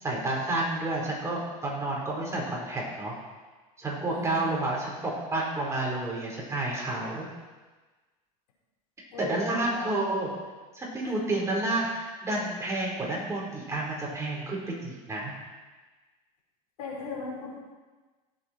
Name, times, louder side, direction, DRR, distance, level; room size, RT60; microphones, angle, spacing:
voice 1, 0.0-3.1 3.8-7.3 9.2-10.3 10.7-15.3, right 2 dB, 15° right, -4 dB, 4.8 m, -30 dB
voice 2, 4.1-4.5 9.1-9.9 11.0-11.1 16.8-17.6, left 3 dB, 80° left, -3 dB, 4.9 m, -37 dB
17.5 x 8.2 x 4.8 m, 1.3 s
supercardioid pair, 110°, 19 cm